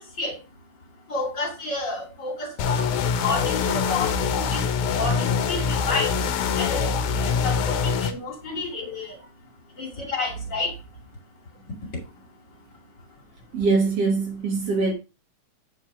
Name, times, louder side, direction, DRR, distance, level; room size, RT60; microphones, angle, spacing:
voice 1, 1.1-4.6 4.9-6.1 6.6-9.2 9.8-10.7, left 3 dB, 35° left, 2.9 m, -30 dB
sound 1, 2.6-8.1, left 6 dB, 80° left, 2.3 m, -24 dB
voice 2, 13.5-14.9, right 4 dB, 55° right, 2.4 m, -22 dB
8.5 x 4.6 x 4.7 m
omnidirectional pair, 3.5 m